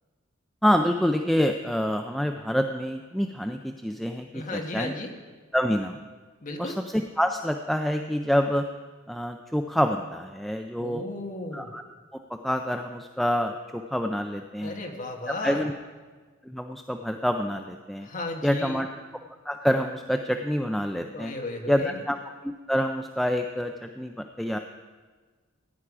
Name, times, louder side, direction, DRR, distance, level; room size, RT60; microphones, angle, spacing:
voice 1, 0.6-4.9 5.5-6.0 6.6-8.6 9.1-11.0 11.5-11.8 12.3-14.8 15.3-15.7 16.4-18.1 18.4-18.9 19.5-21.3 21.7-22.2 22.4-24.6, equal, ahead, 4 dB, 0.4 m, -27 dB
voice 2, 4.3-5.1 6.4-6.8 10.8-11.7 14.6-15.6 18.0-18.8 21.1-22.0, left 2 dB, 40° left, 2 dB, 1.4 m, -35 dB
16.0 x 10.0 x 4.9 m, 1.4 s
head